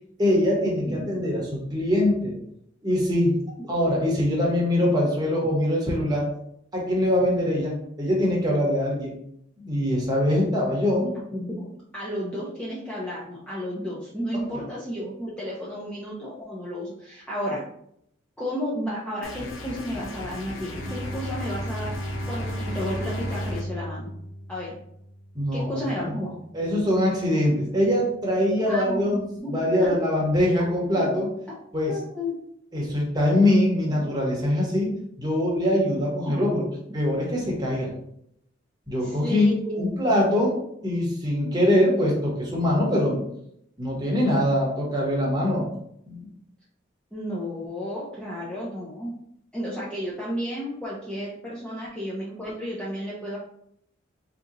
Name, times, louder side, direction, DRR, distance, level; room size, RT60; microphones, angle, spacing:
voice 1, 0.2-2.3 2.8-3.4 3.7-6.3 6.7-9.1 9.6-11.1 14.3-14.6 25.3-26.1 26.5-29.2 29.5-31.3 31.7-31.9 32.7-34.9 35.2-36.6 36.9-37.9 38.9-39.5 39.8-43.2 43.8-45.7 46.1-46.2, left 1 dB, 20° right, -3 dB, 1.0 m, -23 dB
voice 2, 11.3-17.6 18.4-24.1 24.5-24.7 25.5-26.4 28.7-29.9 30.6-31.1 31.5-31.6 31.9-32.3 36.2-36.8 39.0-40.2 47.1-49.1 49.5-53.4, equal, 5° left, -7 dB, 0.5 m, -33 dB
sound 1, 19.2-23.6, left 2 dB, 90° left, 0.6 m, -38 dB
Bowed string instrument, 20.7-26.4, equal, 25° left, 1.2 m, -34 dB
3.7 x 2.8 x 2.5 m, 0.73 s
head